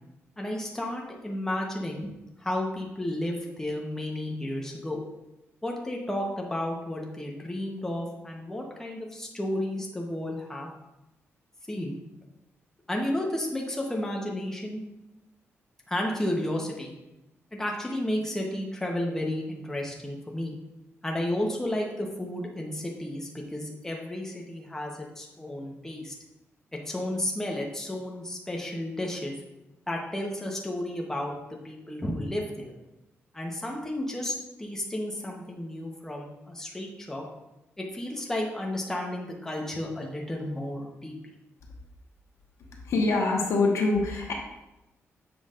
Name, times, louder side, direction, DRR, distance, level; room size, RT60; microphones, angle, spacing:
voice 1, 0.4-2.1 2.4-5.0 5.6-10.7 11.7-12.0 12.9-14.8 15.9-16.9 17.5-20.5 21.0-26.1 26.7-29.4 29.9-32.7 33.3-37.3 37.8-41.1, left 1 dB, 10° left, -1 dB, 0.9 m, -32 dB
voice 2, 42.7-44.3, left 3 dB, 75° left, 0 dB, 1.2 m, -25 dB
7.3 x 6.0 x 2.5 m, 0.95 s
wide cardioid pair, 125°, 5 cm